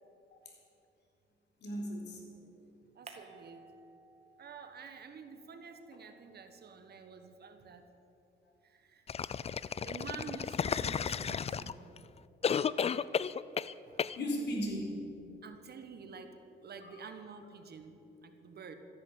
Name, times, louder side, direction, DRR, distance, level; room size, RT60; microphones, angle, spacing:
voice 1, 1.6-2.3 14.1-15.0 16.8-17.1, equal, 60° left, 0 dB, 4.1 m, -37 dB
voice 2, 2.9-3.7 4.4-7.8 8.6-9.1 9.6-12.1 13.9-14.1 15.4-16.4 16.6-18.7, right 5 dB, 55° right, 7 dB, 1.5 m, -49 dB
sound 1, 3.1-4.7 5.0-7.5, right 4 dB, 35° right, 2.0 m, -58 dB
sound 2, 9.1-12.0 12.4-13.7 14.0-14.2, left 7 dB, 30° left, 0.4 m, -33 dB
14.0 x 10.5 x 9.0 m, 2.8 s
cardioid pair, 90°, 20 cm